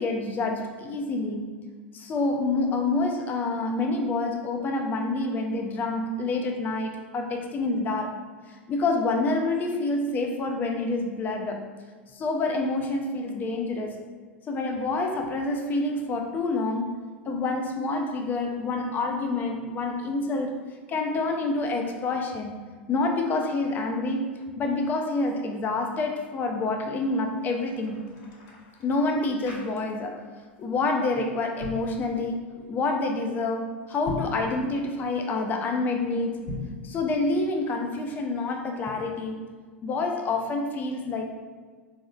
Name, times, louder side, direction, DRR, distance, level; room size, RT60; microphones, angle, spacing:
voice 1, 0.0-1.6 1.9-8.1 8.5-11.7 12.1-14.0 14.5-17.0 17.3-20.5 20.9-22.6 22.9-24.3 24.6-28.1 28.8-30.2 30.6-36.4 36.8-39.4 39.8-41.3, left 3 dB, 30° left, 3 dB, 0.4 m, -27 dB
sound 1, 27.3-30.2 30.5-30.8 31.4-31.9 33.9-34.4 36.3-36.8, left 2 dB, 45° left, 0.9 m, -39 dB
4.8 x 2.0 x 2.4 m, 1.5 s
hypercardioid pair, 90°, 6 cm